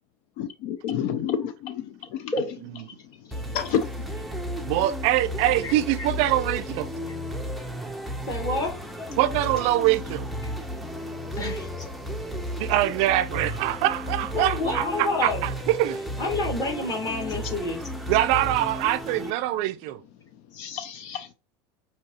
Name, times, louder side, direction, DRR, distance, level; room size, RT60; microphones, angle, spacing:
voice 1, 0.4-2.3 3.5-4.3 20.5-21.3, left 8 dB, 60° left, 0.5 m, -30 dB
sound 1, 3.3-19.3, equal, ahead, 0.5 m, -33 dB
voice 2, 4.6-6.9 9.2-10.3 12.6-16.0 18.1-20.0, right 14 dB, 55° right, 0.4 m, -24 dB
voice 3, 5.6-6.1 8.3-8.7 9.0-9.1 11.4-11.7 14.3-15.5 16.2-17.8, left 2 dB, 30° left, 1.9 m, -29 dB
5.6 x 2.8 x 2.8 m
supercardioid pair, 130°, 13 cm